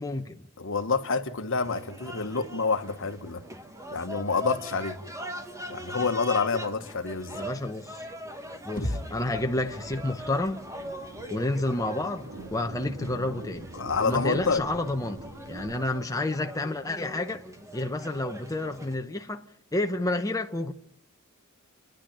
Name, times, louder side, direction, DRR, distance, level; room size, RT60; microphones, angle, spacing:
voice 1, 0.0-0.4 7.3-8.0 8.6-10.6 11.3-13.7 14.0-17.4 17.7-20.7, left 2 dB, 15° left, 0.9 m, -30 dB
voice 2, 0.6-3.4 3.9-5.0 5.7-7.5 8.8-9.0 13.7-14.6, left 4 dB, 60° left, 1.3 m, -28 dB
sound 1, 1.6-18.9, equal, 15° right, 1.7 m, -41 dB
sound 2, 8.8-12.7, equal, 45° left, 2.4 m, -39 dB
Thunder, 9.1-15.8, right 1 dB, 70° right, 2.6 m, -45 dB
30.0 x 10.5 x 8.9 m
head